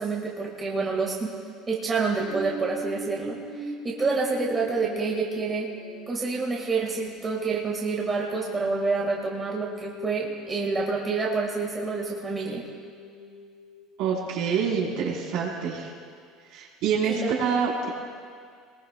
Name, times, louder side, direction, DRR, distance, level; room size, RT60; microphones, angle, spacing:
voice 1, 0.0-1.3 1.7-5.7 6.1-12.6 17.1-17.6, right 4 dB, 20° right, -2 dB, 1.6 m, -28 dB
sound 1, 2.2-15.8 16.3-16.4, left 1 dB, 85° left, 4.9 m, -42 dB
voice 2, 14.0-15.9 16.5-17.9, right 6 dB, 65° right, -3 dB, 3.7 m, -26 dB
22.5 x 19.5 x 2.2 m, 2.1 s
cardioid pair, 150°, 0 cm